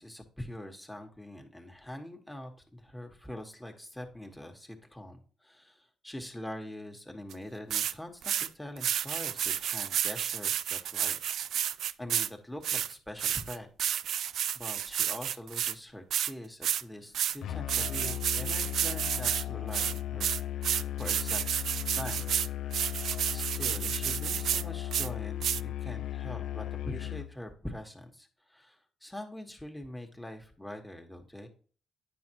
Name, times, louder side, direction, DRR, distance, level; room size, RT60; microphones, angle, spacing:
voice 1, 0.0-13.9 14.2-21.4 22.0-22.2 22.9-31.5, left 1 dB, 5° left, 3 dB, 1.5 m, -44 dB
sound 1, 7.3-7.4 7.7-7.9 8.2-8.5 8.8-12.3 12.6-15.7 16.1-16.3 16.6-16.8 17.1-17.4 17.7-19.4 19.7-24.6 24.9-25.1 25.4-25.6, right 10 dB, 70° right, 0.3 m, -31 dB
Musical instrument, 17.4-27.3, left 12 dB, 75° left, 0.4 m, -36 dB
9.4 x 5.8 x 3.0 m, 0.41 s
cardioid pair, 90°, 0 cm